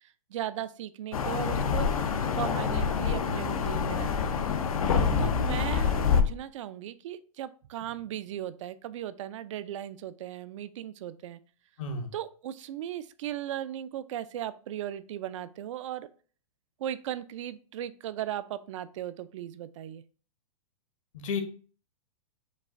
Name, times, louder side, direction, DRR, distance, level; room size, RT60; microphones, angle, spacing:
voice 1, 0.0-4.3 5.2-11.4 12.1-16.1 16.8-20.0, right 11 dB, 60° right, 14 dB, 0.4 m, -37 dB
sound 1, 1.1-6.2, left 6 dB, 85° left, 0.7 m, -27 dB
voice 2, 4.9-5.4 11.8-12.1 21.1-21.4, left 2 dB, 65° left, 6 dB, 1.0 m, -33 dB
5.3 x 2.5 x 3.6 m, 0.40 s
hypercardioid pair, 140°, 18 cm